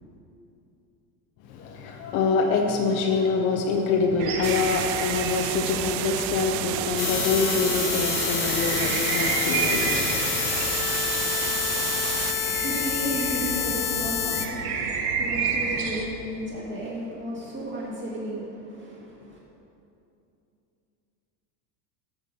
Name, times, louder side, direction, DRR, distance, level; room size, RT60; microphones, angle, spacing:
voice 1, 1.4-10.5, left 4 dB, 25° left, 1 dB, 0.5 m, -25 dB
sound 1, 4.2-16.0, right 5 dB, 55° right, 1.3 m, -32 dB
sound 2, 4.4-12.3, right 14 dB, 75° right, 0.6 m, -31 dB
sound 3, 7.0-14.5, left 9 dB, 65° left, 1.0 m, -28 dB
voice 2, 12.3-19.4, right 1 dB, 20° right, -7 dB, 1.9 m, -34 dB
14.5 x 6.7 x 5.4 m, 2.7 s
supercardioid pair, 170°, 50 cm